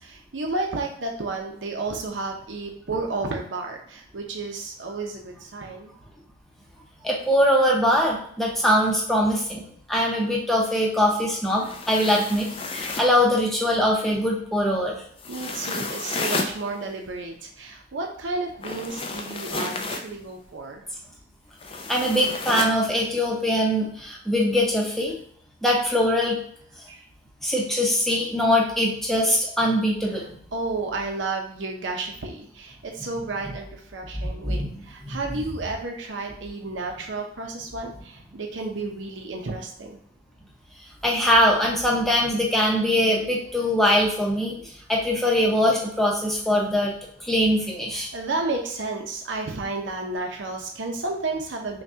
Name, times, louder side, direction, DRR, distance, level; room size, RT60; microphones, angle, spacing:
voice 1, 0.0-5.9 15.3-20.8 26.9-27.0 30.5-40.0 47.9-51.8, right 3 dB, 85° right, 2 dB, 0.7 m, -32 dB
voice 2, 7.0-9.6 9.9-12.5 12.7-15.0 21.9-25.1 25.6-26.4 27.4-30.3 34.1-35.2 41.0-44.5 44.9-46.9 47.2-48.1, equal, ahead, -2 dB, 0.7 m, -22 dB
sound 1, 11.5-13.2 15.2-16.6 18.6-20.1 21.6-22.8, left 3 dB, 30° left, 0.4 m, -31 dB
5.7 x 2.3 x 2.8 m, 0.62 s
head